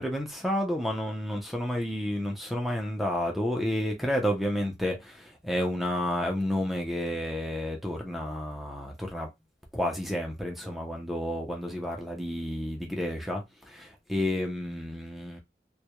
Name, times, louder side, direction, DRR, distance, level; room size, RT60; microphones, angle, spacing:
voice 1, 0.0-9.3 9.7-15.4, equal, ahead, 0.4 m, -31 dB
2.2 x 2.0 x 2.8 m
head